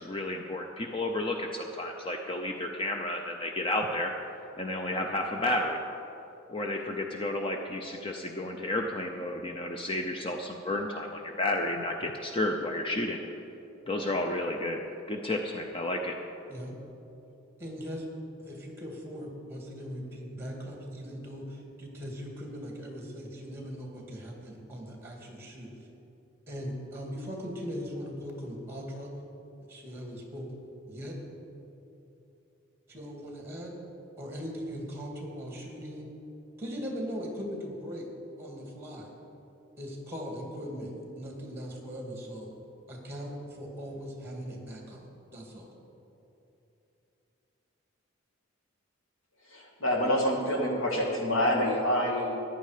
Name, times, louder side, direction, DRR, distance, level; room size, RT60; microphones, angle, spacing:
voice 1, 0.0-4.1 4.6-5.8 6.5-13.2 13.9-16.2, left 1 dB, 25° left, 3 dB, 0.6 m, -32 dB
voice 2, 17.6-18.0 18.4-25.7 26.5-29.1 29.7-30.5 30.9-31.2 32.9-33.7 34.2-36.1 36.6-38.1 38.4-39.1 39.8-42.5 42.9-45.0 45.3-45.7, equal, 10° right, 0 dB, 2.1 m, -39 dB
voice 3, 49.4-52.4, equal, 75° left, -1 dB, 2.4 m, -27 dB
14.5 x 10.0 x 5.0 m, 2.9 s
head